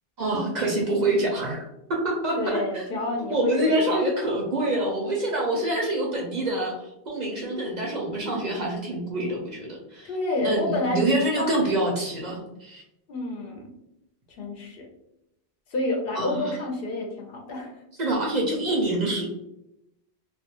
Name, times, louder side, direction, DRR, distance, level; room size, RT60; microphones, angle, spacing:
voice 1, 0.2-2.9 3.3-10.1 10.4-12.8 16.1-16.5 18.0-19.3, right 1 dB, 55° right, -1 dB, 0.6 m, -26 dB
voice 2, 2.4-4.0 10.0-11.0 11.4-11.7 13.1-13.7 14.4-14.9 15.7-17.8, left 2 dB, 65° left, 1 dB, 0.8 m, -29 dB
2.4 x 2.2 x 2.9 m, 0.84 s
omnidirectional pair, 1.1 m